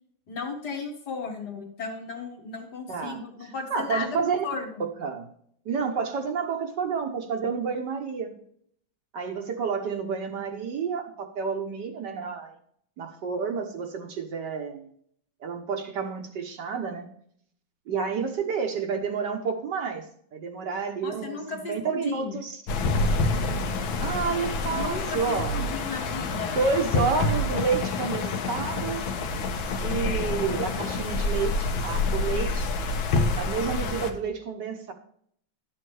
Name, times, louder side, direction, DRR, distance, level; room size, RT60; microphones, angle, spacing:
voice 1, 0.3-4.2 4.4-4.7 21.0-22.4 24.7-26.6, left 5 dB, 55° left, 2 dB, 1.9 m, -35 dB
voice 2, 2.9-4.4 4.8-5.3 5.6-8.3 9.1-12.5 13.0-14.9 15.4-17.1 17.9-20.1 20.3-22.6 24.0-25.5 26.3-29.1 29.8-32.7 33.3-34.9, right 5 dB, 65° right, 5 dB, 1.4 m, -30 dB
sound 1, 22.7-34.1, left 3 dB, 75° left, 1.7 m, -27 dB
11.0 x 7.8 x 3.2 m, 0.65 s
omnidirectional pair, 2.2 m